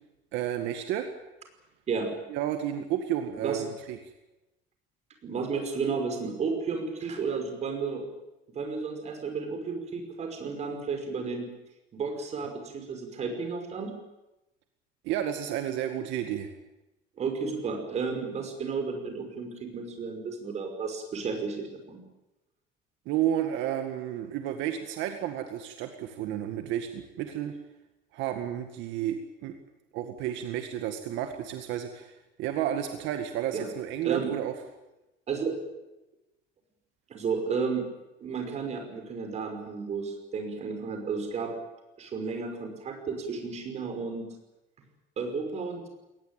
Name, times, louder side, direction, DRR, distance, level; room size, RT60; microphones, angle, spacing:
voice 1, 0.3-1.1 2.3-4.0 15.0-16.5 23.1-27.5 28.1-29.5 29.9-34.5, right 11 dB, 75° right, 6 dB, 2.0 m, -31 dB
voice 2, 5.2-8.0 8.5-11.5 11.9-13.9 17.2-22.0 33.5-33.7 34.0-34.3 35.3-35.5 37.1-37.9 38.2-41.5 42.0-44.3 45.2-45.8, right 5 dB, 35° right, 5 dB, 5.6 m, -32 dB
21.5 x 19.5 x 9.1 m, 0.96 s
cardioid pair, 155°, 19 cm